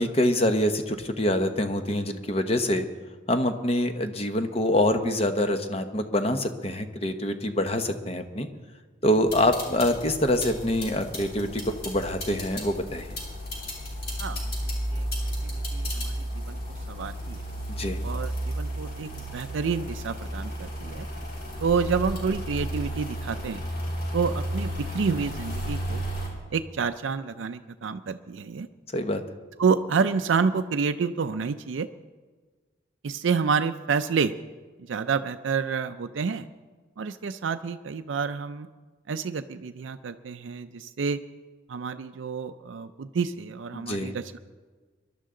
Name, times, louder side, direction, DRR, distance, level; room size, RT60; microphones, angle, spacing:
voice 1, 0.0-2.8 3.3-8.5 9.0-13.2 17.8-18.0 28.9-29.2 43.7-44.1, left 1 dB, 30° left, 7 dB, 0.9 m, -25 dB
sound 1, 9.3-26.3, equal, 55° left, 3.5 m, -33 dB
voice 2, 14.9-17.5 18.0-21.1 21.6-23.6 24.1-26.0 26.5-28.7 29.6-31.9 33.0-34.3 34.8-36.5 37.0-38.7 39.1-41.2 41.7-44.4, right 5 dB, 85° right, 8 dB, 0.4 m, -29 dB
21.5 x 11.5 x 3.8 m, 1.4 s
head